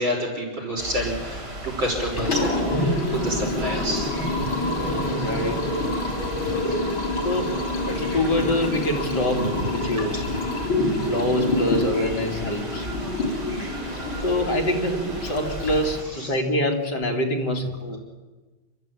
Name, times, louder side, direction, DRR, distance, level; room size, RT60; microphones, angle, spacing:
voice 1, 0.0-4.2 4.9-5.3 6.7-6.8, equal, 70° right, 0 dB, 6.5 m, -29 dB
sound 1, 0.8-16.0, right 1 dB, 35° right, 4.3 m, -35 dB
Liquid, 2.0-16.1, left 2 dB, 80° left, 4.7 m, -27 dB
voice 2, 4.7-5.6 7.2-7.5 7.9-10.2 11.0-12.9 14.2-18.0, left 1 dB, 55° left, 2 dB, 3.1 m, -25 dB
28.5 x 13.0 x 9.2 m, 1.3 s
omnidirectional pair, 2.2 m